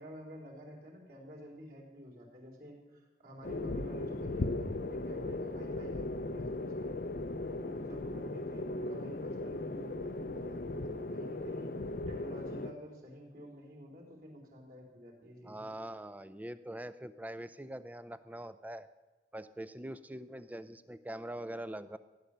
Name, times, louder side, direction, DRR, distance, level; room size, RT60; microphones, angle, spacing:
voice 1, 0.0-7.0 7.5-11.8 12.1-15.7, equal, 55° right, -3 dB, 4.0 m, -50 dB
sound 1, 3.4-12.7, left 2 dB, 55° left, 0.6 m, -37 dB
voice 2, 15.4-18.9 19.3-22.0, right 1 dB, 10° right, 13 dB, 0.5 m, -43 dB
16.0 x 10.5 x 6.7 m, 1.2 s
head